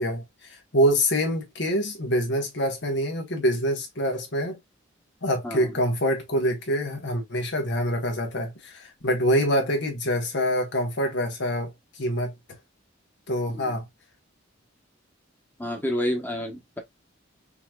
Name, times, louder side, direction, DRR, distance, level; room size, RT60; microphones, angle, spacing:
voice 1, 0.0-4.6 5.2-11.7 12.0-12.3 13.3-13.8, equal, 65° left, 1.4 m, -25 dB
voice 2, 5.4-5.8 13.5-13.7 15.6-16.8, left 1 dB, 10° left, 1.2 m, -30 dB
5.6 x 2.9 x 2.4 m
head